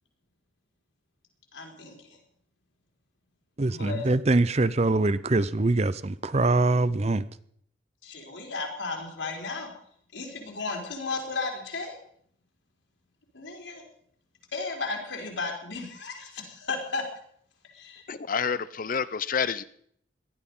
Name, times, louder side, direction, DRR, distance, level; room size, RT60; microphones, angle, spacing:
voice 1, 1.5-2.2 3.7-4.1 8.0-9.7 10.1-12.0 13.3-13.8 14.5-17.0 17.6-18.1, left 3 dB, 70° left, 2 dB, 4.1 m, -34 dB
voice 2, 3.6-7.2, right 2 dB, 35° right, 16 dB, 0.6 m, -23 dB
voice 3, 18.1-19.6, left 6 dB, 45° left, 16 dB, 0.6 m, -28 dB
18.5 x 12.0 x 5.4 m, 0.64 s
head